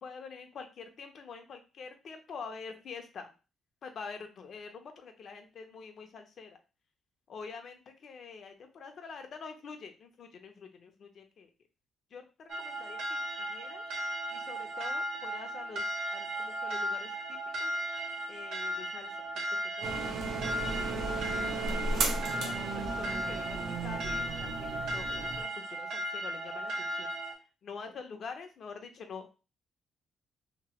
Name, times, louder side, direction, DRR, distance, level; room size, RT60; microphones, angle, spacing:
voice 1, 0.0-3.3 3.8-6.6 7.3-11.5 12.1-13.8 14.3-17.1 17.6-17.7 18.3-19.4 19.8-20.2 20.5-21.3 21.6-27.1 27.6-29.3, left 5 dB, 60° left, 6 dB, 0.6 m, -46 dB
sound 1, 12.5-27.3, right 1 dB, 85° right, 0.9 m, -36 dB
sound 2, 19.8-25.4, right 3 dB, 65° right, 0.6 m, -35 dB
3.0 x 2.6 x 2.9 m, 0.32 s
cardioid pair, 90°, 0 cm